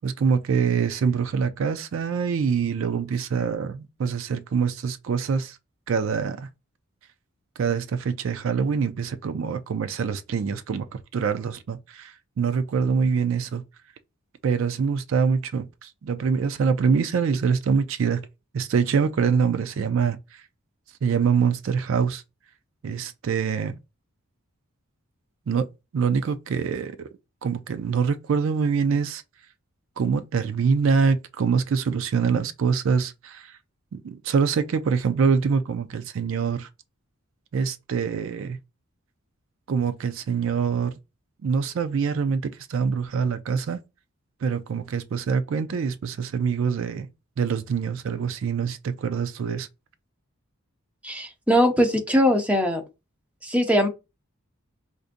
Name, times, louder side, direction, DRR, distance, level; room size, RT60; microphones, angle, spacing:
voice 1, 0.0-5.6 5.9-6.5 7.6-13.6 14.4-18.2 18.5-20.4 21.0-22.2 22.8-23.8 25.5-25.7 25.9-27.1 27.4-29.2 30.0-33.6 33.9-36.7 37.5-38.6 39.7-40.9 41.4-43.8 44.4-47.1 47.4-49.7, right 6 dB, 60° right, 0.3 m, -25 dB
voice 2, 51.0-52.8 53.4-53.9, equal, 5° right, 0.6 m, -21 dB
4.9 x 2.6 x 2.5 m
head